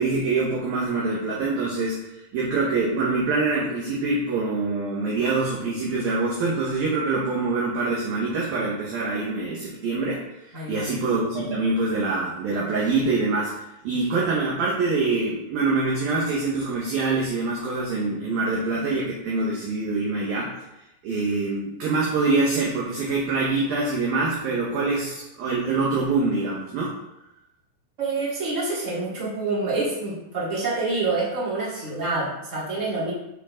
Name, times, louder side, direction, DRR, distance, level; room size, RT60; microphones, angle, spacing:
voice 1, 0.0-10.2 10.7-13.5 13.8-20.5 21.0-26.9, right 3 dB, 65° right, -5 dB, 2.5 m, -25 dB
voice 2, 10.5-10.9 28.0-33.1, right 3 dB, 15° right, -8 dB, 3.2 m, -27 dB
12.0 x 6.5 x 3.8 m, 0.89 s
omnidirectional pair, 6.0 m